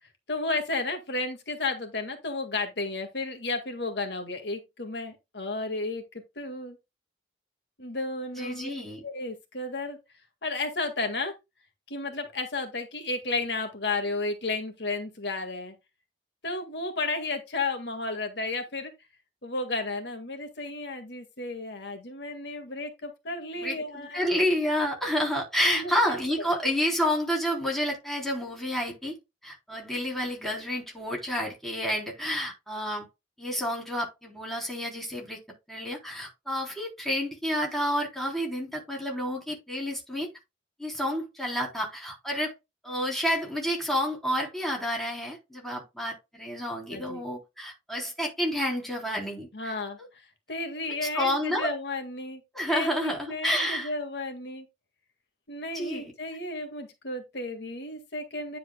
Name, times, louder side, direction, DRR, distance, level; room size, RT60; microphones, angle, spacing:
voice 1, 0.3-6.0 6.4-6.8 7.8-8.7 9.0-10.0 10.4-11.4 11.9-15.7 16.4-18.9 19.4-24.2 25.6-26.2 26.5-26.6 46.9-47.2 49.5-52.4 52.7-54.7 55.5-58.6, left 3 dB, 65° left, 1.9 m, -33 dB
voice 2, 8.4-9.0 23.6-29.1 29.4-33.1 33.4-35.4 35.7-40.3 40.8-42.5 42.8-49.7 51.1-51.7 52.5-53.9 55.7-56.1, equal, ahead, 3.6 m, -29 dB
10.0 x 7.5 x 2.2 m
head